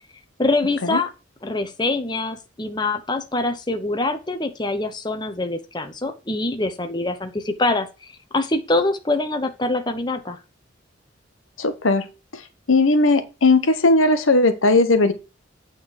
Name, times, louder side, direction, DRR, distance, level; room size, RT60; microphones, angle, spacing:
voice 1, 0.4-1.1 1.4-10.4, left 2 dB, 20° left, 7 dB, 0.8 m, -24 dB
voice 2, 11.6-12.0 12.7-15.1, left 2 dB, 90° left, 10 dB, 1.1 m, -17 dB
8.5 x 3.9 x 6.4 m, 0.29 s
head